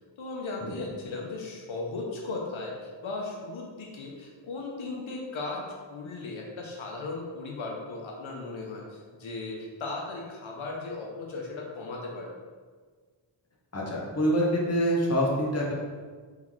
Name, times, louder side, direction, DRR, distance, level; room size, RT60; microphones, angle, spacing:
voice 1, 0.2-12.3, left 3 dB, 90° left, -1 dB, 0.7 m, -37 dB
voice 2, 13.7-15.7, equal, 30° left, -3 dB, 1.1 m, -26 dB
3.7 x 3.6 x 3.1 m, 1.5 s
wide cardioid pair, 55°, 47 cm